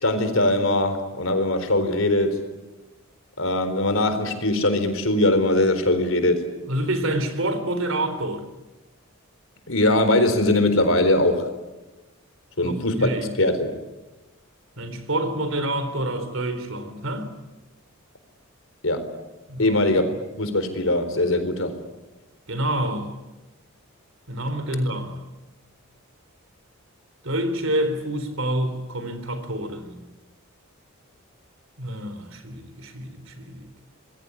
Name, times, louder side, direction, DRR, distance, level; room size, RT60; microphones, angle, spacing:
voice 1, 0.0-2.4 3.4-6.4 9.7-11.5 12.6-13.1 13.4-13.8 18.8-19.1 19.6-20.1 20.4-21.7, left 1 dB, 65° left, 4.2 m, -21 dB
voice 2, 6.7-8.4 12.6-13.3 14.8-17.3 19.5-19.8 22.5-23.2 24.3-25.2 27.2-30.0 31.8-33.7, right 1 dB, 60° right, 4.1 m, -27 dB
26.5 x 21.5 x 9.8 m
head